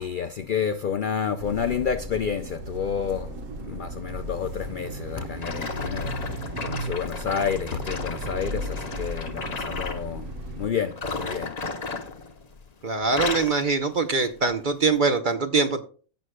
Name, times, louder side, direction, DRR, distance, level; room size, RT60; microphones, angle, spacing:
voice 1, 0.0-3.3 3.6-10.3 10.6-11.5, left 7 dB, 80° left, 0.4 m, -29 dB
sound 1, 1.4-10.7, right 1 dB, 60° right, 1.5 m, -35 dB
sound 2, 5.4-10.1 10.9-12.7 13.0-13.6 14.2-14.4 15.1-15.2, left 4 dB, 35° left, 0.9 m, -34 dB
voice 2, 12.8-15.9, right 4 dB, 45° right, 0.7 m, -23 dB
16.0 x 6.2 x 2.2 m
omnidirectional pair, 1.5 m